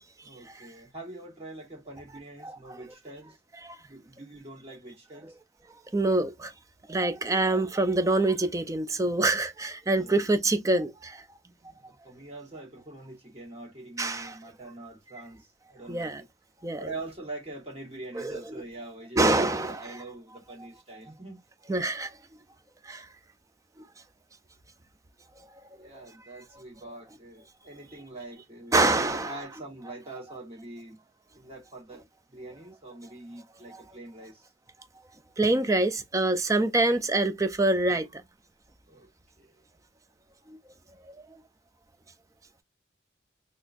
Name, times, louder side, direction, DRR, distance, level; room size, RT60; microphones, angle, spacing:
voice 1, 0.2-3.4 3.8-5.4 10.0-10.2 11.4-16.3 16.8-21.4 25.7-31.0 31.3-34.5 38.9-39.1 39.4-39.6, right 2 dB, 35° right, 1.6 m, -44 dB
voice 2, 5.9-6.5 6.9-11.2 14.0-14.4 15.9-16.2 16.6-16.8 18.2-18.4 19.2-19.8 21.7-22.1 22.8-23.1 28.7-29.3 35.4-38.2 40.5-40.6 41.1-41.2, right 2 dB, 15° right, 0.4 m, -25 dB
3.8 x 2.9 x 2.5 m
head